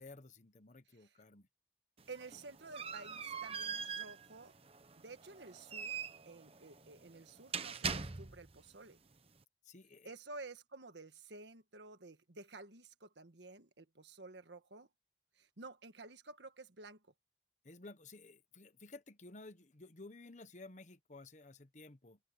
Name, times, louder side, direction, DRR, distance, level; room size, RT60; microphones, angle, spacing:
voice 1, 0.0-1.5 9.6-10.1 17.6-22.2, left 2 dB, 45° left, 1.2 m, -54 dB
sound 1, 2.0-8.6, right 6 dB, 35° right, 1.1 m, -43 dB
voice 2, 2.1-4.5 5.0-6.0 6.2-9.0 10.0-14.9 15.4-17.0, right 3 dB, 85° right, 1.6 m, -52 dB
open air
head